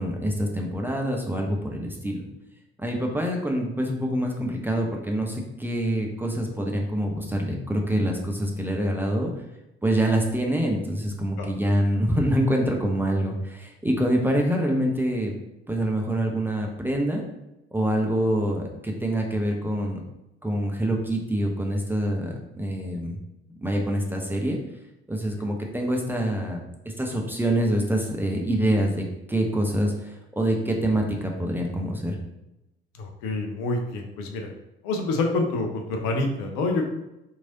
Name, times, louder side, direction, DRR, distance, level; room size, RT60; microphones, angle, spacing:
voice 1, 0.0-2.2 2.8-9.3 9.8-15.3 15.7-17.2 17.7-20.0 20.4-23.2 23.5-24.6 25.1-26.6 27.0-32.2, right 1 dB, 5° right, 0 dB, 0.6 m, -25 dB
voice 2, 33.0-34.5 34.8-36.8, left 2 dB, 60° left, 3 dB, 0.6 m, -27 dB
3.1 x 2.7 x 3.9 m, 0.92 s
figure-of-eight pair, 50°, 33 cm